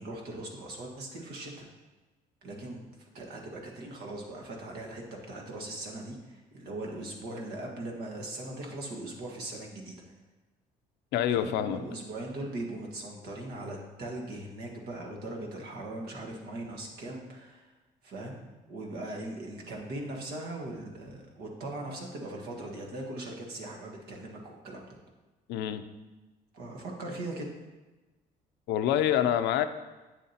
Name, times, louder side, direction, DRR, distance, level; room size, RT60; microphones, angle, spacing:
voice 1, 0.0-1.7 2.4-9.9 11.3-17.7 18.0-18.4 18.7-25.0 26.5-27.5, right 2 dB, 70° right, 0 dB, 1.6 m, -40 dB
voice 2, 11.1-11.8 25.5-25.8 28.7-29.7, left 10 dB, 80° left, 10 dB, 0.5 m, -26 dB
8.3 x 7.3 x 2.9 m, 1.2 s
cardioid pair, 110°, 17 cm